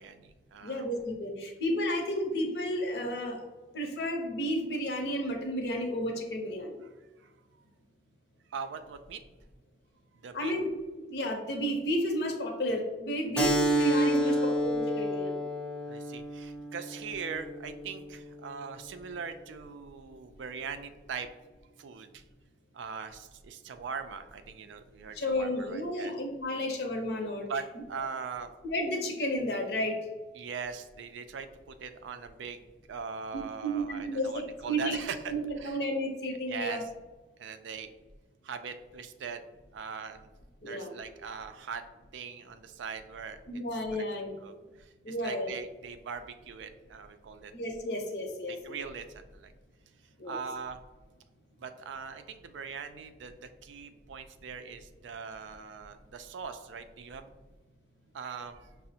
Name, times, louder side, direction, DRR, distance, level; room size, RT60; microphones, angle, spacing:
voice 1, 0.0-0.8 7.2-7.3 8.5-9.2 10.2-10.5 14.2-14.5 15.9-21.3 21.8-22.2 22.7-26.1 27.5-27.6 27.9-28.5 30.3-35.2 35.6-35.8 36.5-36.8 37.4-37.9 38.4-39.4 39.7-40.3 40.7-41.8 42.1-43.4 43.9-44.0 44.4-47.5 48.5-49.5 50.2-50.8 51.6-57.3 58.1-58.7, right 6 dB, 80° right, 9 dB, 0.3 m, -41 dB
voice 2, 0.6-3.4 3.7-6.8 10.3-15.3 25.1-27.5 28.6-29.9 33.3-35.0 35.3-36.8 40.6-40.9 43.5-44.3 45.0-45.5 47.5-48.8 50.2-50.4, equal, 65° left, 2 dB, 0.7 m, -32 dB
Keyboard (musical), 13.4-18.5, right 1 dB, 5° left, 0.4 m, -30 dB
5.8 x 2.0 x 2.7 m, 1.2 s
head